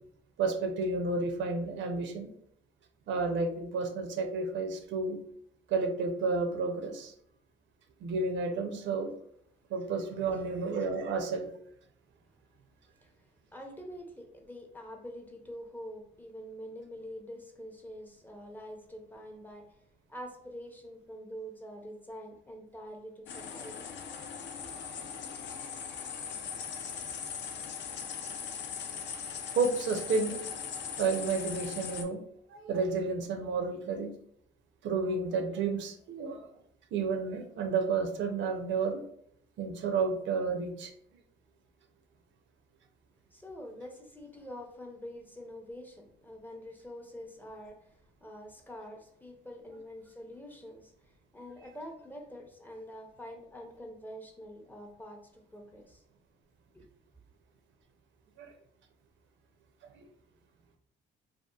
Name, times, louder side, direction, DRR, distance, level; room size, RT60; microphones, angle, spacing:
voice 1, 0.4-2.3 3.1-5.2 5.7-7.1 8.0-9.1 9.7-11.5 29.6-30.4 31.0-32.2 32.5-34.1 34.8-36.5 36.9-39.0 39.6-40.9 58.4-58.5 59.8-60.1, right 4 dB, 70° right, 6 dB, 0.5 m, -31 dB
voice 2, 13.5-19.7 20.1-23.9 43.3-56.0 56.7-56.9, equal, 10° left, 1 dB, 0.5 m, -46 dB
sound 1, 23.3-32.0, left 7 dB, 65° left, 0.4 m, -40 dB
2.7 x 2.4 x 2.2 m, 0.68 s
cardioid pair, 90°, 20 cm